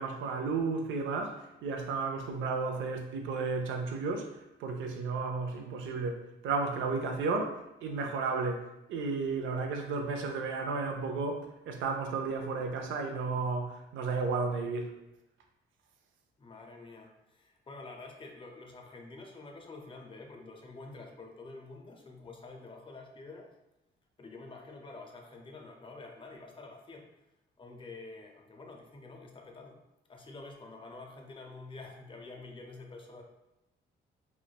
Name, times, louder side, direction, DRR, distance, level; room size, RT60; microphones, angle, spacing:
voice 1, 0.0-14.9, right 4 dB, 75° right, 4 dB, 0.4 m, -33 dB
voice 2, 16.4-23.5 24.2-27.1 27.6-29.8 30.1-33.2, left 3 dB, 25° left, 2 dB, 0.5 m, -48 dB
3.1 x 2.1 x 2.3 m, 0.93 s
cardioid pair, 90°, 20 cm